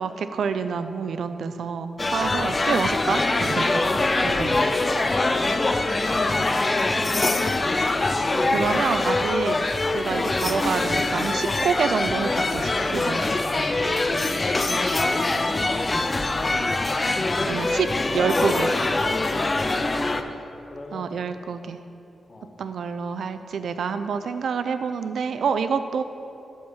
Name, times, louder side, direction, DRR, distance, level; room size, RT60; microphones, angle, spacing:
voice 1, 0.0-3.8 4.2-4.6 8.2-13.2 13.6-13.7 17.5-18.7 20.9-21.8 22.6-26.0, right 6 dB, 80° right, 10 dB, 0.5 m, -27 dB
sound 1, 2.0-20.2, left 2 dB, 25° left, 0.4 m, -23 dB
voice 2, 4.2-5.9 6.2-7.1 13.7-14.4 14.6-16.5 19.3-21.1 22.3-22.6, left 2 dB, 45° left, 3 dB, 0.9 m, -42 dB
sound 2, 10.6-12.8, right 2 dB, 20° right, 1.0 m, -44 dB
11.0 x 4.5 x 6.4 m, 2.8 s
wide cardioid pair, 115°, 0 cm